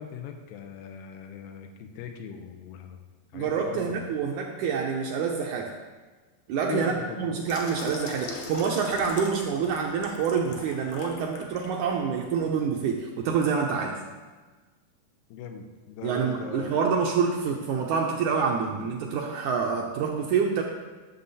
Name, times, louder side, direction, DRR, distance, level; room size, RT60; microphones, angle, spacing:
voice 1, 0.0-3.0 3.3-4.1 6.6-7.4 15.3-16.8, left 7 dB, 85° left, 5 dB, 2.5 m, -39 dB
voice 2, 3.3-5.7 6.5-14.0 16.0-20.6, right 6 dB, 75° right, 0 dB, 1.9 m, -27 dB
Water tap faucet / Sink (filling or washing), 7.5-11.8 12.2-12.4, left 4 dB, 65° left, 2.2 m, -40 dB
11.5 x 7.0 x 4.1 m, 1.3 s
omnidirectional pair, 4.1 m